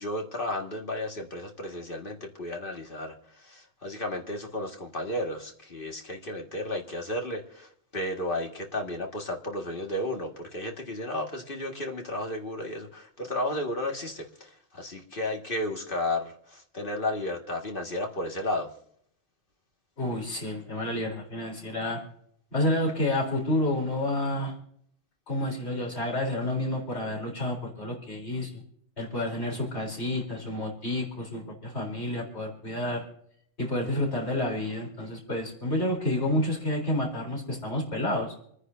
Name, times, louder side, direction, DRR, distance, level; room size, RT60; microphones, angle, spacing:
voice 1, 0.0-18.7, left 1 dB, 50° left, 1 dB, 2.1 m, -33 dB
voice 2, 20.0-22.0 22.5-24.5 25.3-28.6 29.0-33.0 33.6-38.3, left 1 dB, 75° left, -1 dB, 4.1 m, -29 dB
28.5 x 9.6 x 2.7 m, 0.66 s
omnidirectional pair, 1.1 m